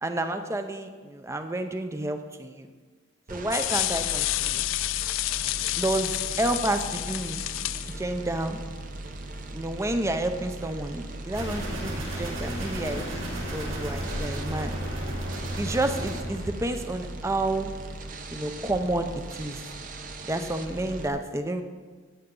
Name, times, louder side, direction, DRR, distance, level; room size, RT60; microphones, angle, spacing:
voice 1, 0.0-2.7 3.3-4.6 5.7-7.4 8.0-8.6 9.5-14.8 15.6-17.7 18.3-19.6 20.2-21.6, right 1 dB, 15° right, 7 dB, 0.6 m, -30 dB
sound 1, 3.3-21.1, right 2 dB, 40° right, 0.8 m, -39 dB
sound 2, 3.5-8.0, left 17 dB, 70° left, 0.3 m, -29 dB
sound 3, 11.3-16.4, right 1 dB, 70° right, 3.9 m, -33 dB
13.5 x 9.2 x 3.8 m, 1.5 s
head